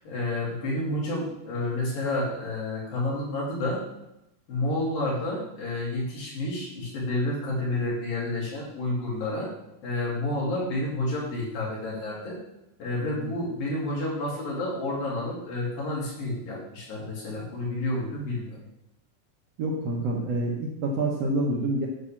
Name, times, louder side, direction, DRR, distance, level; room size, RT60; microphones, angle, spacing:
voice 1, 0.0-3.8 4.5-9.5 9.8-12.4 12.8-18.6, left 2 dB, 75° left, -5 dB, 4.5 m, -30 dB
voice 2, 12.9-13.3 19.6-21.9, right 2 dB, 65° right, -2 dB, 1.6 m, -27 dB
9.4 x 4.2 x 7.3 m, 0.86 s
omnidirectional pair, 4.1 m